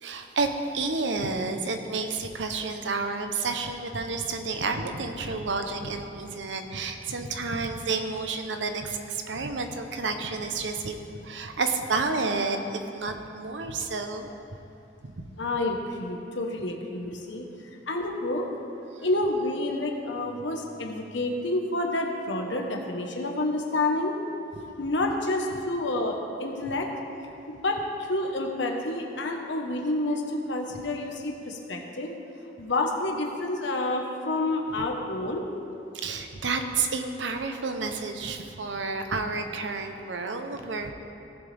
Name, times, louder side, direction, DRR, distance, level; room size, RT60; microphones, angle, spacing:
voice 1, 0.0-11.0 11.2-14.3 15.0-15.3 19.0-19.1 35.9-40.9, right 4 dB, 85° right, 6 dB, 0.8 m, -30 dB
voice 2, 15.4-17.4 17.9-18.5 19.0-24.2 24.8-26.9 27.5-32.1 32.6-35.4, left 2 dB, 85° left, 2 dB, 1.2 m, -29 dB
17.0 x 7.1 x 3.5 m, 2.7 s
head